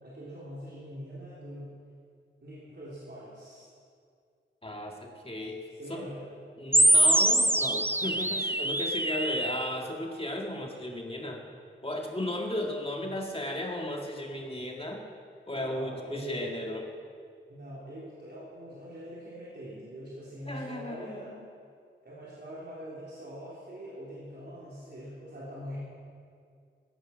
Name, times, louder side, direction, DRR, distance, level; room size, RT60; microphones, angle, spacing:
voice 1, 0.0-1.7 2.4-3.6 5.8-6.3 13.0-13.2 15.5-16.5 17.5-21.4 22.0-25.8, equal, 55° right, -8 dB, 4.1 m, -43 dB
voice 2, 4.6-6.1 6.6-11.5 11.8-15.0 15.5-16.9 20.5-21.2, left 1 dB, 30° left, 0 dB, 2.0 m, -35 dB
sound 1, 6.7-9.7, right 1 dB, 10° right, 0.5 m, -24 dB
15.5 x 15.0 x 6.2 m, 2.3 s
wide cardioid pair, 60°, 21 cm